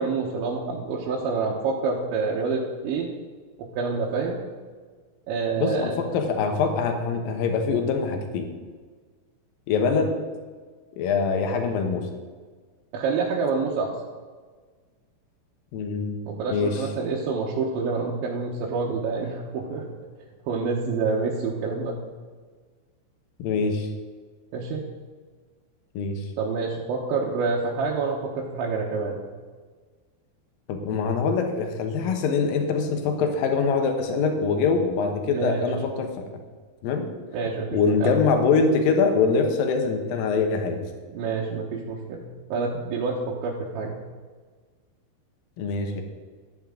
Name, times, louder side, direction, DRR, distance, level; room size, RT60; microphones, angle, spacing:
voice 1, 0.0-3.1 3.6-4.4 5.3-5.9 12.9-13.9 16.3-19.9 20.5-22.0 24.5-24.8 26.4-29.3 35.2-35.7 37.3-38.2 41.1-44.0, right 4 dB, 80° right, -4 dB, 3.3 m, -27 dB
voice 2, 5.6-8.5 9.7-10.1 11.0-12.1 15.7-16.2 16.5-16.9 23.4-23.9 25.9-26.3 30.7-36.2 36.8-37.1 37.7-40.8 45.6-46.0, left 5 dB, 70° left, 5 dB, 2.3 m, -24 dB
14.0 x 9.0 x 3.7 m, 1.5 s
omnidirectional pair, 5.4 m